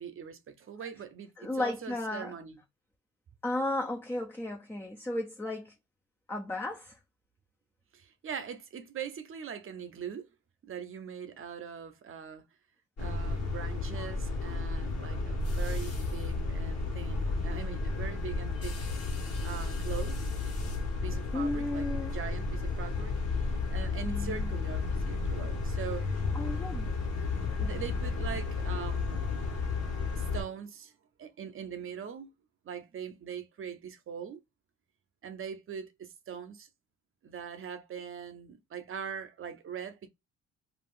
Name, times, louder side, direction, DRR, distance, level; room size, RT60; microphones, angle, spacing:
voice 1, 0.0-2.6 7.9-10.3 10.6-12.5 13.0-18.8 19.4-20.2 21.0-23.1 23.7-26.2 27.6-29.3 30.1-30.9 31.2-32.3 32.6-34.4 35.2-36.7 37.2-40.1, right 7 dB, 45° right, 0.7 m, -42 dB
voice 2, 1.4-2.4 3.4-5.7 6.3-7.0 21.3-22.2 24.0-24.6 26.1-26.9, left 1 dB, 10° left, 0.5 m, -34 dB
sound 1, 13.0-30.4, left 3 dB, 55° left, 1.3 m, -32 dB
2.6 x 2.3 x 3.5 m
cardioid pair, 90°, 30 cm